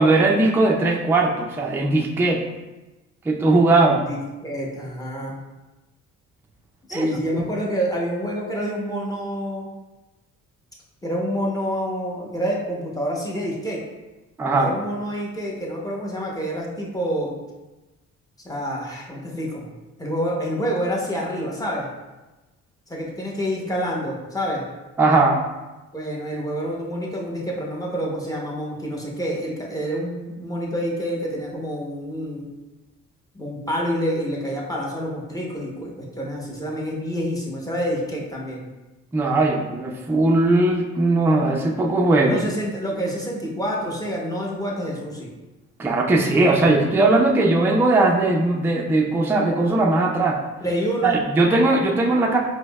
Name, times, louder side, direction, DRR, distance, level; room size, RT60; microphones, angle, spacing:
voice 1, 0.0-2.4 3.3-4.0 6.9-7.1 14.4-14.7 25.0-25.4 39.1-42.4 45.8-50.4 51.0-52.4, right 2 dB, 10° right, 0 dB, 0.3 m, -19 dB
voice 2, 3.9-5.3 6.9-9.7 11.0-13.8 14.6-17.4 18.4-19.7 20.0-21.9 22.9-24.6 25.9-32.5 33.3-38.6 42.3-45.3 50.6-51.2, equal, 10° left, -3 dB, 0.8 m, -27 dB
4.9 x 2.0 x 2.3 m, 1.1 s
cardioid pair, 90°, 30 cm